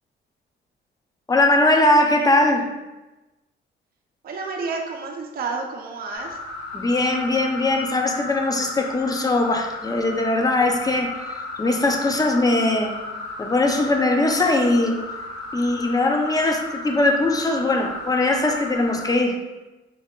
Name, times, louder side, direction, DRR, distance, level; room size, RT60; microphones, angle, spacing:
voice 1, 1.3-2.7 6.7-12.9 13.4-15.0 15.5-19.4, left 2 dB, 20° left, 3 dB, 0.6 m, -20 dB
voice 2, 4.2-6.4, right 4 dB, 50° right, 1 dB, 0.6 m, -30 dB
sound 1, 6.1-19.2, left 3 dB, 85° left, 1.4 m, -34 dB
5.3 x 2.1 x 3.6 m, 1.1 s
cardioid pair, 90°, 20 cm